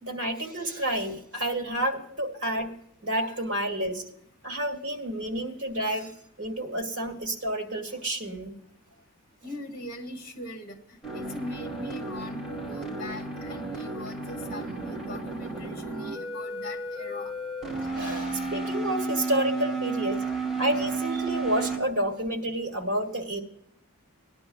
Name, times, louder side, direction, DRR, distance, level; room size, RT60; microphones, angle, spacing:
voice 1, 0.0-2.7 3.0-4.0 4.4-6.1 6.4-8.6 17.9-20.2 20.6-23.4, right 1 dB, 55° right, 2 dB, 2.0 m, -30 dB
voice 2, 9.4-10.8 11.1-17.3, left 1 dB, 40° left, 4 dB, 1.6 m, -41 dB
sound 1, 11.0-21.8, right 3 dB, ahead, 2.7 m, -33 dB
19.0 x 11.5 x 2.3 m, 0.71 s
head